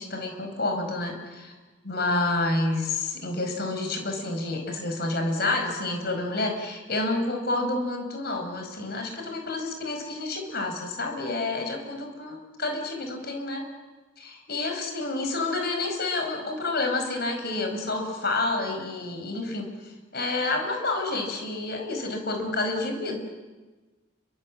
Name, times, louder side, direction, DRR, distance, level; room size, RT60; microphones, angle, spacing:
voice 1, 0.0-1.5 1.8-13.7 14.2-23.2, left 2 dB, 50° left, 4 dB, 5.2 m, -29 dB
28.5 x 24.0 x 7.5 m, 1.2 s
head